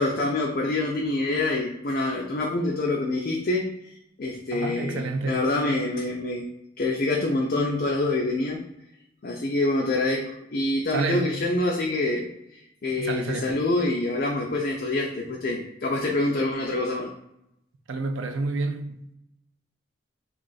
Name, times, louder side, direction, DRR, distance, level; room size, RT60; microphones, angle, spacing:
voice 1, 0.0-3.9 4.2-6.4 6.8-8.6 9.2-12.2 12.5-17.1, left 2 dB, 45° left, 0.4 m, -26 dB
voice 2, 4.5-5.4 10.9-11.4 13.0-13.5 17.9-19.1, right 3 dB, 75° right, 0.4 m, -29 dB
3.1 x 2.4 x 3.9 m
head